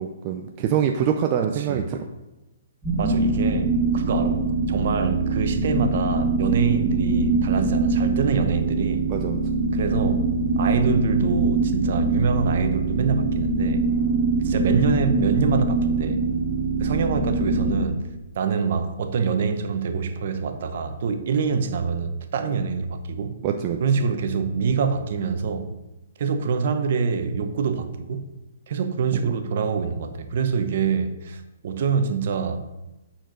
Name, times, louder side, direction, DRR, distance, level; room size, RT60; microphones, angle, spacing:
voice 1, 0.0-2.0 9.1-9.4 23.4-23.8 29.1-29.3, right 8 dB, 30° right, 4 dB, 0.5 m, -25 dB
sound 1, 2.8-17.8, right 3 dB, 5° right, 2.2 m, -23 dB
voice 2, 3.0-9.1 9.7-10.3 10.6-13.9 14.4-16.2 16.8-18.0 18.3-23.4 23.8-25.7 26.2-28.3 28.7-32.6, right 5 dB, 55° right, 7 dB, 0.9 m, -25 dB
9.1 x 4.5 x 5.2 m, 0.99 s
hypercardioid pair, 160°, 0 cm